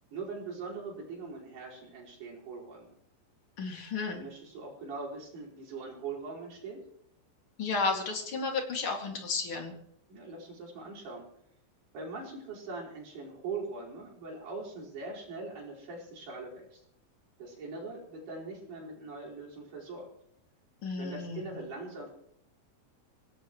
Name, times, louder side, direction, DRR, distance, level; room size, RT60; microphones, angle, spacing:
voice 1, 0.1-2.9 4.1-6.8 10.1-11.2 11.9-16.8 17.4-20.1 21.0-22.1, right 3 dB, 60° right, -5 dB, 6.9 m, -41 dB
voice 2, 3.6-4.2 7.6-9.7 20.8-21.4, left 4 dB, 35° left, 2 dB, 2.4 m, -32 dB
24.5 x 18.0 x 3.2 m, 0.72 s
omnidirectional pair, 5.2 m